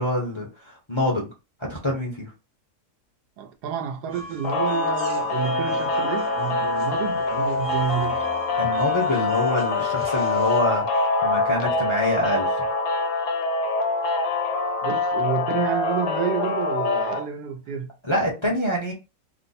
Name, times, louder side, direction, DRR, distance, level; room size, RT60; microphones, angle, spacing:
voice 1, 0.0-1.3 1.7-2.3 8.6-12.5 18.0-18.9, left 1 dB, 25° left, 0.8 m, -26 dB
voice 2, 3.4-8.2 14.8-17.9, right 8 dB, 90° right, 1.2 m, -29 dB
sound 1, 4.1-10.6, right 2 dB, 45° right, 0.9 m, -39 dB
sound 2, 4.4-17.2, left 3 dB, 80° left, 1.3 m, -24 dB
3.3 x 2.1 x 4.0 m
omnidirectional pair, 1.7 m